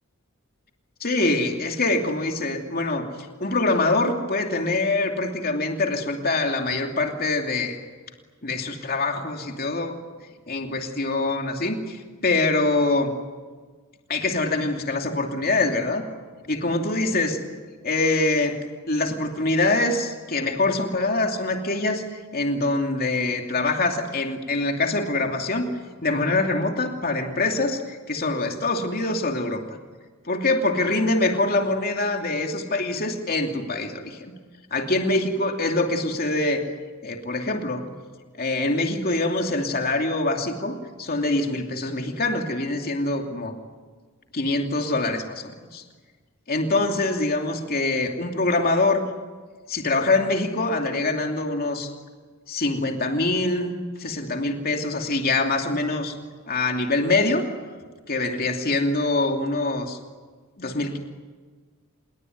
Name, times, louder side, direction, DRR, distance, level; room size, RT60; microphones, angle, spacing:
voice 1, 1.0-3.0 3.4-7.7 8.4-9.9 10.5-13.1 14.1-16.0 16.5-17.4 17.8-18.5 18.9-22.0 22.3-25.7 26.0-29.6 30.3-34.3 34.7-36.6 37.0-37.8 38.4-43.5 44.3-45.8 46.5-49.0 49.7-51.9 52.5-56.1 56.5-57.4 58.1-60.0 60.6-61.0, left 2 dB, 45° left, 3 dB, 2.7 m, -24 dB
27.0 x 22.0 x 9.5 m, 1.4 s
head